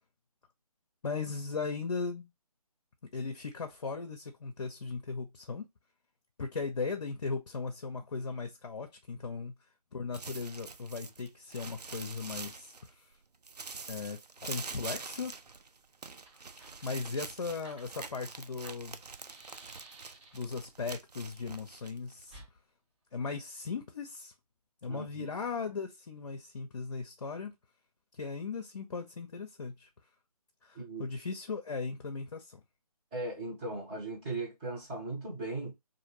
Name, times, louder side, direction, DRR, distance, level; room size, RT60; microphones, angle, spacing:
voice 1, 1.0-2.3 3.0-5.7 6.4-9.5 9.9-13.1 13.9-15.3 16.6-19.0 20.3-22.4 23.1-24.3 24.8-27.5 28.1-29.9 30.6-32.6, left 4 dB, 55° left, 0.6 m, -38 dB
sound 1, 10.1-13.1 13.4-22.4, right 4 dB, 90° right, 0.5 m, -45 dB
Fire, 15.8-15.9 16.1-20.6 22.3-22.5, right 2 dB, 50° right, 1.4 m, -55 dB
voice 2, 24.9-25.3 30.7-31.1 33.1-35.7, right 2 dB, 15° right, 1.2 m, -38 dB
3.2 x 2.7 x 2.9 m
figure-of-eight pair, 150°, 20 cm